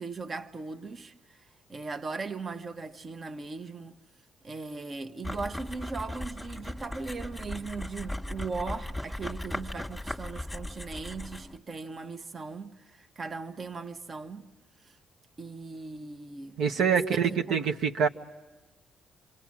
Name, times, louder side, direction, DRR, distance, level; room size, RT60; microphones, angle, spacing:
voice 1, 0.0-4.0 4.4-14.5 14.8-15.0 15.4-17.6, right 4 dB, 40° right, 1.0 m, -39 dB
sound 1, 5.2-11.6, left 1 dB, 5° left, 1.5 m, -38 dB
voice 2, 16.6-18.1, right 7 dB, 80° right, 1.2 m, -25 dB
27.5 x 27.0 x 7.4 m
cardioid pair, 90°, 0 cm